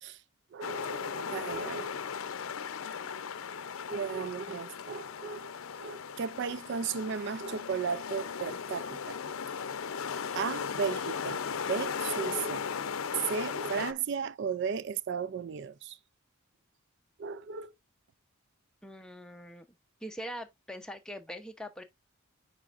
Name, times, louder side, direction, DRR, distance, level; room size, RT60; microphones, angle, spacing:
voice 1, 0.5-2.0 3.9-5.5 5.8-9.2 10.3-11.4 11.7-12.7 13.1-16.0 17.2-17.7, right 6 dB, 55° right, 0.3 m, -35 dB
sound 1, 0.6-13.9, left 6 dB, 80° left, 0.6 m, -37 dB
voice 2, 18.8-19.7 20.0-21.8, equal, 5° left, 0.7 m, -42 dB
9.5 x 4.2 x 2.4 m
head